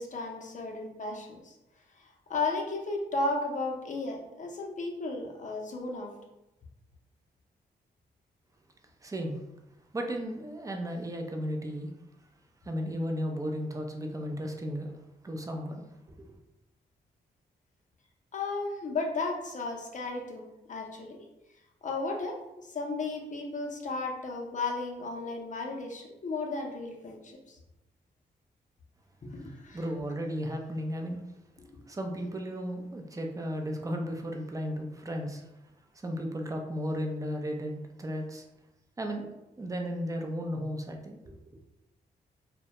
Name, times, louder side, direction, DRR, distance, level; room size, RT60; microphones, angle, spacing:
voice 1, 0.0-1.5 2.0-6.1 18.3-21.2 21.8-27.6 29.2-29.8 31.6-31.8, left 3 dB, 45° left, 1 dB, 0.6 m, -34 dB
voice 2, 9.0-9.4 9.9-11.9 12.6-14.9 15.2-15.9 16.2-16.4 29.7-31.2 31.9-35.4 35.9-38.4 39.0-39.3 39.6-41.6, equal, 20° right, 3 dB, 0.5 m, -34 dB
2.2 x 2.1 x 2.8 m, 0.93 s
supercardioid pair, 55°, 18 cm